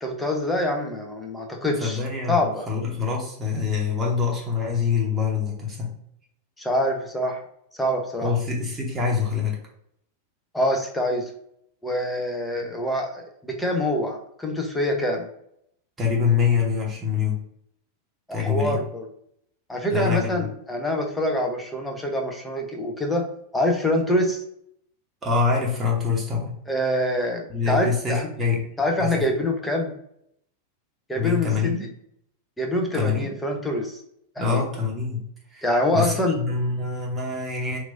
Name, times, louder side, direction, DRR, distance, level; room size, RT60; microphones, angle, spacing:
voice 1, 0.0-2.0 2.3-2.7 6.6-7.4 7.7-8.3 10.5-11.3 11.8-15.3 18.3-19.1 19.7-23.2 23.5-24.4 26.7-28.3 28.8-29.9 31.1-31.7 32.6-34.0 34.4-34.6 35.6-36.4, left 1 dB, 5° left, 1 dB, 0.6 m, -25 dB
voice 2, 1.8-2.4 2.7-5.9 8.2-9.6 12.5-12.7 16.0-17.4 18.3-18.8 19.9-20.5 25.2-26.5 27.5-28.6 29.0-29.2 31.2-31.8 32.9-33.3 34.4-35.2 35.5-35.7 35.9-37.8, left 5 dB, 20° right, -3 dB, 0.9 m, -25 dB
3.0 x 2.5 x 2.5 m, 0.72 s
figure-of-eight pair, 90°, 0 cm